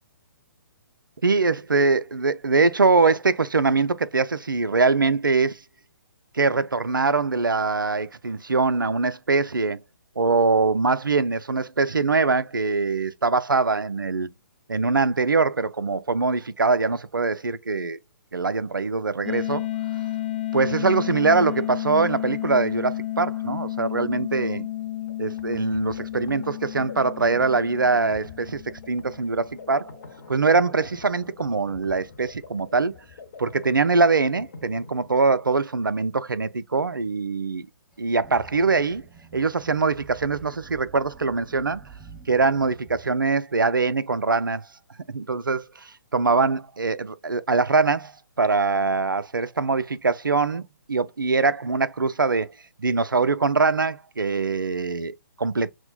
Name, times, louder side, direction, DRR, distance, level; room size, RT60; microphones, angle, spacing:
voice 1, 1.2-5.6 6.3-9.8 10.2-14.3 14.7-18.0 18.3-19.7 20.5-24.7 25.2-28.6 28.9-29.9 30.3-32.9 33.4-37.7 38.0-39.0 39.3-41.8 42.3-44.6 45.1-48.1 48.4-52.5 52.8-55.7, right 4 dB, 85° right, 0.4 m, -23 dB
sound 1, 19.2-29.9, left 14 dB, 30° left, 0.5 m, -32 dB
sound 2, 24.8-35.6, left 5 dB, 55° left, 0.9 m, -46 dB
sound 3, 37.9-43.0, right 5 dB, 5° right, 0.7 m, -48 dB
5.9 x 2.0 x 2.4 m
figure-of-eight pair, 130°, 11 cm